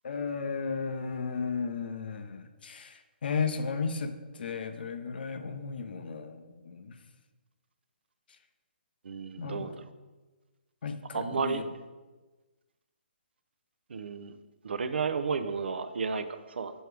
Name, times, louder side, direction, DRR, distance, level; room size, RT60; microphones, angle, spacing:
voice 1, 0.0-7.0 9.4-9.8 10.8-11.6, left 5 dB, 65° left, 9 dB, 0.6 m, -34 dB
voice 2, 9.0-9.8 11.1-11.7 13.9-14.4 14.6-16.7, right 5 dB, 75° right, 10 dB, 0.5 m, -32 dB
6.4 x 4.4 x 3.3 m, 1.2 s
hypercardioid pair, 155°, 6 cm